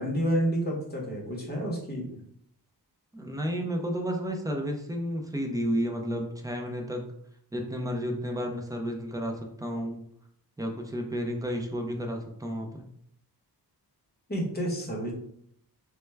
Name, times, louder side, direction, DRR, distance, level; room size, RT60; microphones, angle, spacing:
voice 1, 0.0-2.2 14.3-15.1, right 1 dB, 25° left, -2 dB, 0.8 m, -29 dB
voice 2, 3.1-7.1 7.5-10.0 10.6-12.8, equal, 10° right, 2 dB, 0.3 m, -32 dB
3.3 x 2.1 x 3.2 m, 0.69 s
wide cardioid pair, 160°, 41 cm